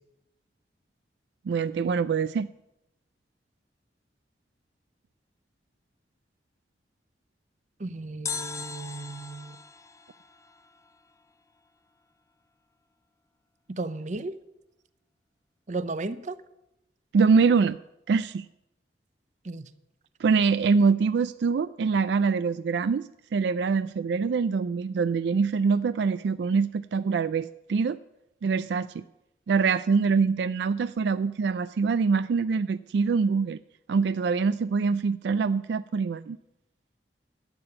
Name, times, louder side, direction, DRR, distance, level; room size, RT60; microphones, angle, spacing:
voice 1, 1.5-2.5 17.1-17.8 18.1-18.4 20.2-28.0 28.4-29.0 29.5-33.6 33.9-36.4, right 5 dB, 75° right, 15 dB, 0.3 m, -24 dB
voice 2, 7.8-9.6 13.7-14.3 15.7-16.4 19.4-19.6, right 3 dB, 45° right, 14 dB, 0.7 m, -34 dB
sound 1, 8.3-11.3 11.6-11.7, left 5 dB, 15° left, 0.5 m, -39 dB
12.0 x 6.9 x 8.8 m, 0.88 s
head